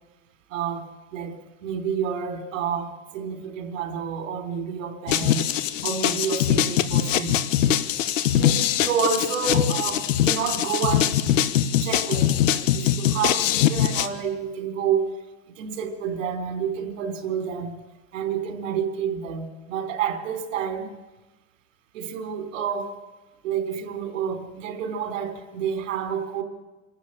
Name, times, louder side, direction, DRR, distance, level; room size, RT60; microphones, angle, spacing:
voice 1, 0.5-5.5 5.8-7.4 8.3-11.2 11.8-15.1 15.6-17.8 18.1-21.0 21.9-22.9 23.4-26.4, right 7 dB, 80° right, 3.8 m, -29 dB
sound 1, 5.1-14.1, left 10 dB, 80° left, 1.4 m, -22 dB
26.0 x 13.0 x 8.9 m
supercardioid pair, 165°, 38 cm